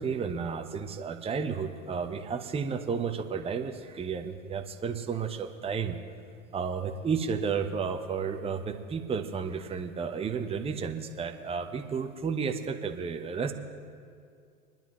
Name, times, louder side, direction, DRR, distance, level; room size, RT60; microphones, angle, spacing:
voice 1, 0.0-6.0 6.5-13.5, right 6 dB, 15° right, 5 dB, 0.9 m, -32 dB
28.0 x 10.5 x 3.1 m, 2.3 s
figure-of-eight pair, 90°, 43 cm